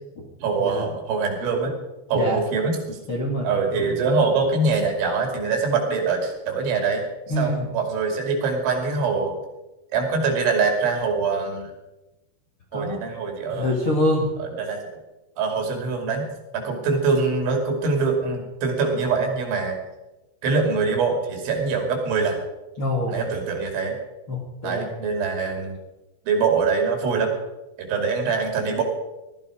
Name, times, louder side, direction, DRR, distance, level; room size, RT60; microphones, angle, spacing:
voice 1, 0.4-1.8 2.1-3.0 3.4-7.0 7.4-9.3 9.9-11.7 12.7-13.7 14.4-14.8 15.4-16.3 16.5-19.8 20.4-22.4 23.1-24.0 24.6-25.8 26.3-27.3 27.8-28.8, right 4 dB, 75° right, 3 dB, 5.0 m, -23 dB
voice 2, 3.1-3.5 3.7-4.0 7.3-7.7 12.7-13.0 13.5-14.3 22.8-23.2 24.3-24.9, left 1 dB, 45° left, -2 dB, 1.8 m, -25 dB
18.5 x 13.5 x 5.1 m, 1.0 s
omnidirectional pair, 5.6 m